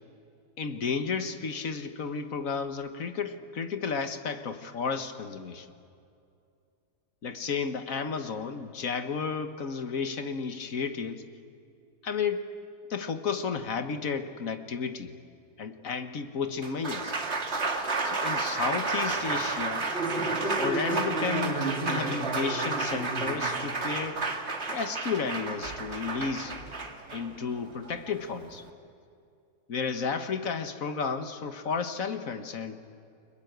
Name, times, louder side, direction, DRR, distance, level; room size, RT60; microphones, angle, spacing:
voice 1, 0.6-5.7 7.2-11.2 12.0-12.5 12.9-15.1 15.6-17.1 18.0-19.9 20.6-24.3 24.7-26.5 27.1-28.6 29.7-32.8, left 5 dB, 60° left, 9 dB, 1.7 m, -32 dB
Applause, 16.4-28.7, right 3 dB, 45° right, 2.1 m, -31 dB
30.0 x 21.5 x 8.1 m, 2.5 s
omnidirectional pair, 1.7 m